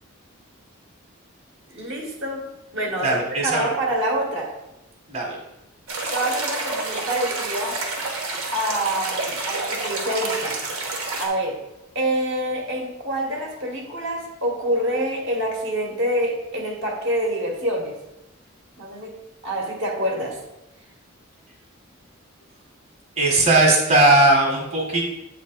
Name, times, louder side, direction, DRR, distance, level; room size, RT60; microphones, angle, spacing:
voice 1, 1.7-2.5 2.7-4.5 6.1-7.8 8.5-10.6 11.2-11.6 11.9-18.0 18.8-19.2 19.4-20.4, right 1 dB, 55° right, 0 dB, 1.1 m, -26 dB
voice 2, 3.0-3.7 5.1-5.4 23.2-25.0, right 2 dB, 30° right, -1 dB, 1.1 m, -18 dB
sound 1, 5.9-11.3, right 2 dB, 90° right, 1.2 m, -28 dB
8.2 x 2.9 x 4.4 m, 0.94 s
head